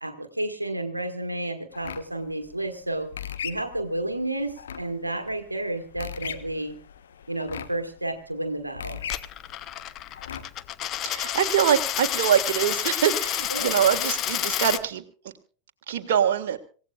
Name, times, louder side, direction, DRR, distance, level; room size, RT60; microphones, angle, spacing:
voice 1, 0.0-3.1 3.4-6.8 7.3-9.0 13.5-13.7, right 1 dB, 85° right, 8 dB, 1.4 m, -31 dB
sound 1, 1.7-10.7, left 8 dB, 65° left, 1.3 m, -39 dB
Coin (dropping), 9.0-14.8, left 12 dB, 35° left, 0.7 m, -29 dB
voice 2, 11.0-15.0 15.9-16.6, right 9 dB, 55° right, 5 dB, 1.6 m, -24 dB
26.5 x 16.5 x 2.3 m, 0.39 s
figure-of-eight pair, 90°, 0 cm